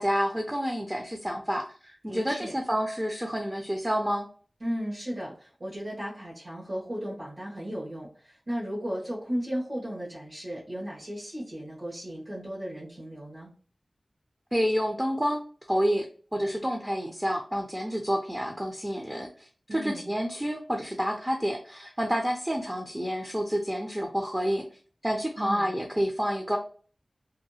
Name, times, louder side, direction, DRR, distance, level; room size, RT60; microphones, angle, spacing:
voice 1, 0.0-4.3 14.5-15.4 15.7-16.1 16.3-24.6 25.0-26.6, equal, 15° right, 3 dB, 0.4 m, -29 dB
voice 2, 2.1-2.5 4.6-13.5 19.7-20.1 25.4-25.7, equal, 60° right, -7 dB, 1.2 m, -35 dB
2.7 x 2.3 x 2.6 m, 0.42 s
wide cardioid pair, 80°, 0 cm